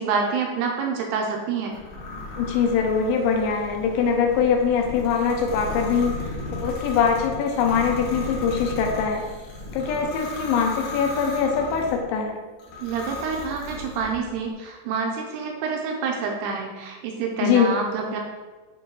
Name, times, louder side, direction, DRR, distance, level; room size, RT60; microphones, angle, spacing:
voice 1, 0.0-1.8 12.8-18.2, right 5 dB, 85° right, 1 dB, 2.5 m, -27 dB
sound 1, 1.7-12.0 12.6-14.2, left 2 dB, 60° left, 2.1 m, -35 dB
voice 2, 2.4-9.2 9.7-12.4 17.4-17.8, left 6 dB, 80° left, 2 dB, 3.0 m, -23 dB
7.8 x 3.1 x 4.3 m, 1.3 s
omnidirectional pair, 5.3 m